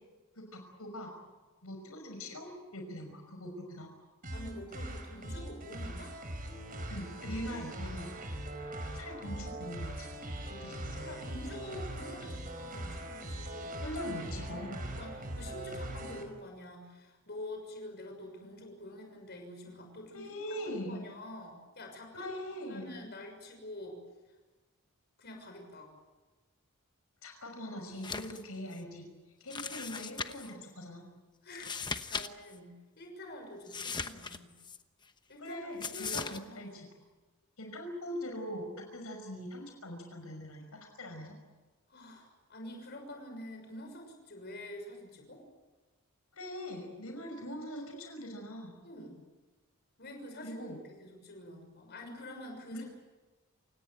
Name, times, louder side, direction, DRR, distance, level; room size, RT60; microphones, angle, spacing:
voice 1, 0.4-1.2 1.6-3.9 6.9-8.1 8.9-10.2 10.5-11.1 13.8-14.8 20.1-21.0 22.1-22.9 27.2-29.1 29.4-31.1 35.4-36.9 37.6-41.4 46.3-48.8 50.4-50.8 52.7-52.8, equal, 85° left, 4 dB, 5.7 m, -42 dB
sound 1, 4.2-16.2, right 1 dB, 40° right, 4.8 m, -41 dB
voice 2, 4.3-6.1 11.0-14.0 14.5-20.3 20.7-22.3 22.6-24.0 25.2-25.9 31.4-34.5 35.3-35.6 35.9-36.6 41.9-45.4 48.8-49.2 50.0-52.8, left 1 dB, 50° left, 3 dB, 6.5 m, -47 dB
sound 2, 27.9-28.4 28.7-28.8 29.5-30.5 31.5-32.3 32.5-32.6 33.7-34.8 35.8-36.4, left 5 dB, 20° left, 1.0 m, -38 dB
28.5 x 18.0 x 9.2 m, 1.2 s
head